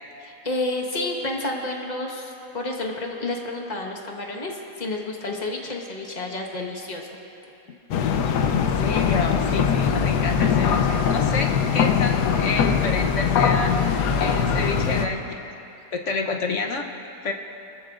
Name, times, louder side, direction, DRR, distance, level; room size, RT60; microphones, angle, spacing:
voice 1, 0.2-7.1, left 2 dB, 25° left, 0 dB, 1.4 m, -30 dB
sound 1, 7.9-15.1, left 6 dB, 85° left, 1.3 m, -21 dB
voice 2, 8.5-13.8 14.2-15.5 15.9-16.8 17.2-17.3, left 4 dB, 55° left, 3 dB, 1.1 m, -29 dB
24.0 x 14.0 x 2.5 m, 2.8 s
omnidirectional pair, 1.7 m